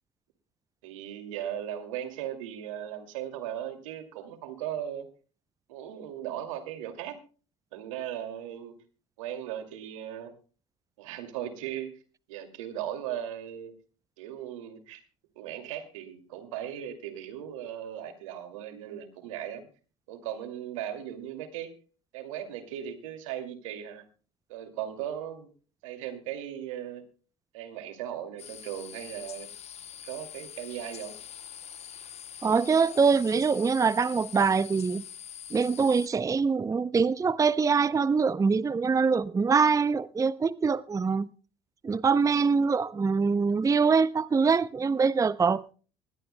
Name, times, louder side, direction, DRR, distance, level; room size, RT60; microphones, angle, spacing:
voice 1, 0.8-5.1 5.7-7.2 7.7-8.7 9.2-10.3 11.0-11.9 12.3-13.7 14.2-15.0 15.4-19.7 20.1-21.7 22.1-24.0 24.5-25.5 25.8-27.0 27.5-29.5 30.0-31.2, right 10 dB, 85° right, 2.4 m, -37 dB
sound 1, 28.4-36.1, left 9 dB, 40° left, 0.8 m, -44 dB
voice 2, 32.4-35.0 35.5-41.3 41.8-45.7, right 5 dB, 20° right, 0.6 m, -24 dB
21.0 x 17.5 x 2.2 m
hypercardioid pair, 70°, 16 cm